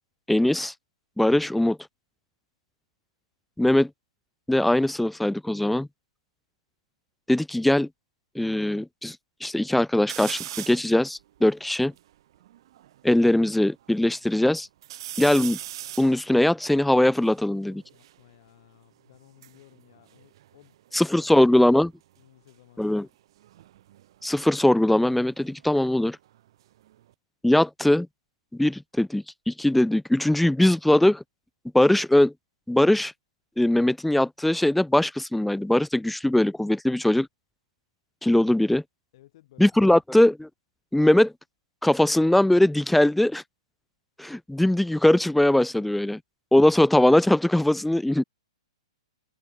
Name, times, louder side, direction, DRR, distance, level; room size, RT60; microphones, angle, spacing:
voice 1, 0.3-0.7 1.2-1.8 3.6-3.9 4.5-5.9 7.3-7.9 8.4-9.2 9.4-11.9 13.0-14.7 15.2-15.6 16.0-17.8 20.9-21.9 22.8-23.1 24.2-26.2 27.4-28.1 28.5-31.2 31.7-32.3 32.7-33.1 33.6-37.3 38.2-38.8 39.6-40.5 40.9-41.3 41.8-43.4 44.2-46.2 46.5-48.2, left 1 dB, 5° left, 0.4 m, -21 dB
sound 1, 10.1-10.9 11.5-11.6 11.8-13.3 13.8-14.4 14.8-18.2 19.1-21.0 21.3-21.8 23.4-26.0 26.3-27.1, right 13 dB, 55° right, 0.7 m, -41 dB
voice 2, 17.9-21.8 22.2-23.1 33.8-33.9 39.1-40.0 45.7-46.0, left 15 dB, 55° left, 6.4 m, -57 dB
open air
hypercardioid pair, 130°, 3 cm